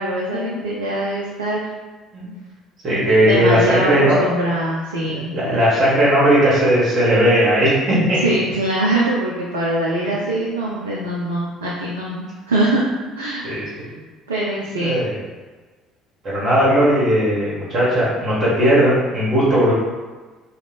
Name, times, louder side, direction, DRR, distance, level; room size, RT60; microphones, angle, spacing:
voice 1, 0.0-1.6 3.3-3.9 4.2-5.4 8.2-12.9 13.2-13.8 14.3-15.0, right 1 dB, 80° right, -4 dB, 0.3 m, -23 dB
voice 2, 2.8-4.2 5.1-8.2 10.0-10.2 13.4-14.0 14.8-15.1 16.2-19.7, equal, 45° right, -9 dB, 1.1 m, -17 dB
2.4 x 2.2 x 3.3 m, 1.3 s
figure-of-eight pair, 55°, 0 cm